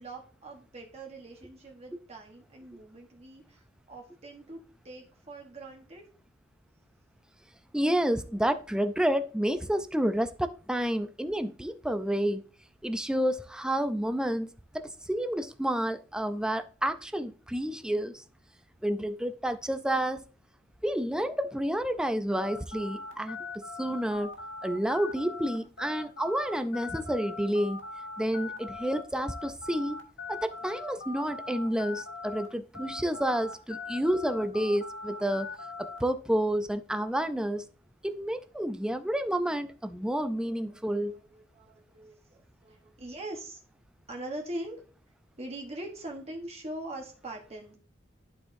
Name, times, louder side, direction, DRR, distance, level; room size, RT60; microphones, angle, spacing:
voice 1, 0.0-4.6 4.8-6.0 40.7-43.6 44.1-44.8 45.4-47.8, right 1 dB, 35° right, 1.1 m, -42 dB
voice 2, 7.7-12.4 12.8-18.2 18.8-20.2 20.8-24.3 24.6-27.8 28.2-30.0 30.3-35.5 35.8-37.7 38.0-41.2, equal, 5° right, 0.4 m, -30 dB
sound 1, 22.3-32.5 32.7-36.0, left 3 dB, 80° left, 1.4 m, -41 dB
11.0 x 4.5 x 2.6 m
head